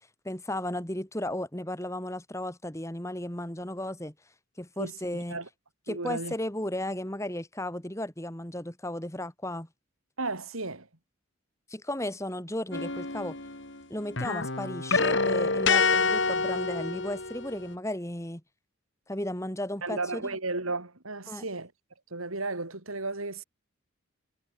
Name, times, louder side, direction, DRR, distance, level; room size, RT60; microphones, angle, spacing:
voice 1, 0.2-4.1 4.6-5.4 5.9-9.7 11.7-13.4 13.9-18.4 19.1-20.2 21.3-21.4, left 1 dB, 15° left, 2.3 m, -34 dB
voice 2, 4.8-5.5 5.9-6.3 10.2-10.9 19.8-21.7 22.1-23.4, right 3 dB, 80° right, 3.9 m, -34 dB
sound 1, 12.7-13.8 14.1-17.6, left 4 dB, 60° left, 3.2 m, -27 dB
head